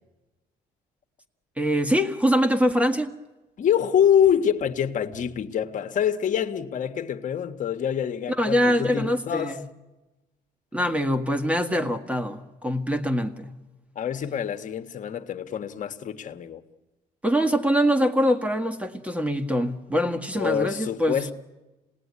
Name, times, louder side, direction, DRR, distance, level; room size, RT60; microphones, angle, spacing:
voice 1, 1.6-3.1 8.4-9.6 10.7-13.5 17.2-21.2, equal, 10° right, 1.8 m, -24 dB
voice 2, 3.6-9.6 13.9-16.6 20.3-21.3, left 9 dB, 50° left, 1.5 m, -25 dB
27.5 x 19.0 x 9.7 m
cardioid pair, 110°, 17 cm